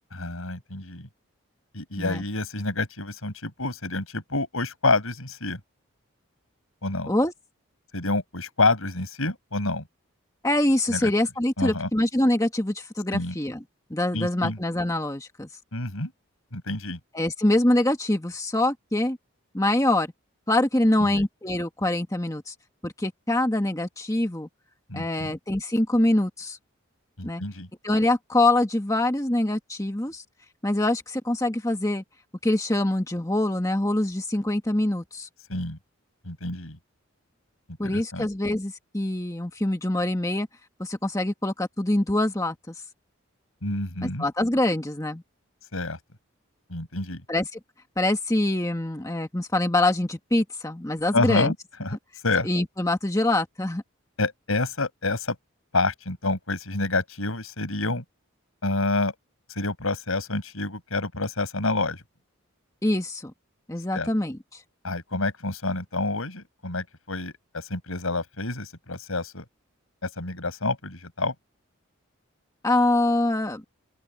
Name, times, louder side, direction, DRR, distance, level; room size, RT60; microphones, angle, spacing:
voice 1, 0.1-1.1 1.7-5.6 6.8-7.1 7.9-9.8 10.9-11.1 11.6-11.9 13.1-13.3 14.1-14.6 15.7-16.1 16.5-17.0 21.0-21.3 24.9-25.3 27.2-27.7 35.5-35.8 36.2-36.8 37.8-38.3 43.6-44.2 45.7-46.0 46.7-47.2 51.1-52.0 52.2-52.5 54.2-55.4 55.7-58.0 58.6-59.1 59.6-62.0 63.9-64.1 64.8-69.4 70.0-71.3, left 2 dB, 85° left, 5.9 m, -28 dB
voice 2, 10.4-13.6 13.9-15.5 17.1-19.2 19.5-20.1 20.5-22.5 22.8-24.5 24.9-26.6 27.2-27.4 27.8-30.2 30.6-32.0 32.4-35.3 37.8-40.5 40.8-42.7 44.0-45.2 47.3-47.6 48.0-51.5 52.4-53.8 62.8-63.3 63.7-64.6 72.6-73.6, left 1 dB, 15° left, 1.6 m, -24 dB
open air
head